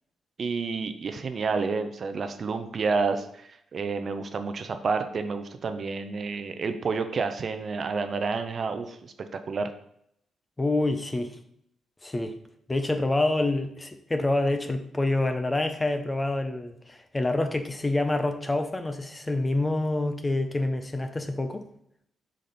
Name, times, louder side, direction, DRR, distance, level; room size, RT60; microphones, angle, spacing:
voice 1, 0.4-9.7, right 4 dB, 40° right, 8 dB, 0.5 m, -30 dB
voice 2, 10.6-11.4 12.0-12.4 12.7-21.6, left 2 dB, 15° left, 7 dB, 0.5 m, -27 dB
5.1 x 4.0 x 5.8 m, 0.72 s
cardioid pair, 150°, 0 cm